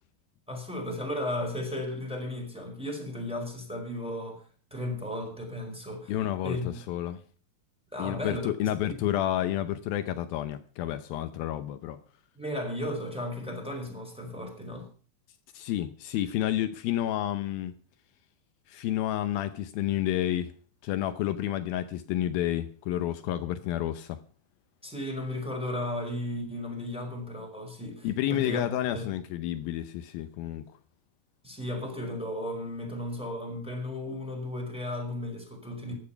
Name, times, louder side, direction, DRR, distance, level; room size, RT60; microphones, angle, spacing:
voice 1, 0.5-6.1 6.4-6.7 7.9-9.0 12.3-14.9 24.8-28.6 28.9-29.1 31.4-35.9, left 1 dB, ahead, 4.4 m, -35 dB
voice 2, 6.1-7.2 8.0-12.0 15.5-17.7 18.7-20.5 20.8-24.2 28.0-30.7, left 12 dB, 80° left, 2.5 m, -30 dB
15.0 x 11.0 x 5.8 m
omnidirectional pair, 4.3 m